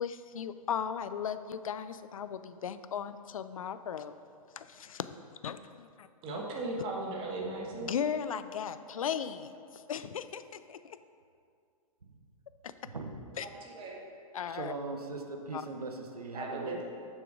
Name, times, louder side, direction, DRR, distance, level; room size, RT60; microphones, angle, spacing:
voice 1, 0.0-4.1 4.6-5.1 5.4-6.1 7.8-11.0 12.6-12.7 13.4-13.5 14.3-14.7 15.5-15.7, left 8 dB, 65° left, 12 dB, 0.4 m, -37 dB
voice 2, 6.2-7.9 13.4-14.0 16.3-16.8, right 2 dB, 25° right, -1 dB, 1.2 m, -37 dB
voice 3, 12.8-13.2 14.5-16.8, right 3 dB, 80° right, 5 dB, 0.8 m, -40 dB
6.5 x 6.3 x 4.7 m, 2.3 s
figure-of-eight pair, 110°, 19 cm